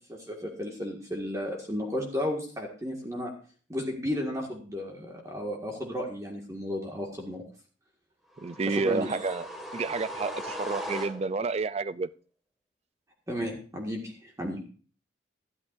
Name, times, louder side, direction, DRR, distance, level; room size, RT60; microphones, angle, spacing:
voice 1, 0.1-3.3 3.7-7.4 8.7-9.1 13.3-14.7, left 1 dB, 15° right, 1 dB, 1.8 m, -33 dB
sound 1, 8.4-11.6, equal, ahead, 1.8 m, -39 dB
voice 2, 8.4-9.5 9.7-12.1, right 4 dB, 35° right, 17 dB, 0.4 m, -30 dB
12.5 x 12.0 x 2.6 m, 0.40 s
head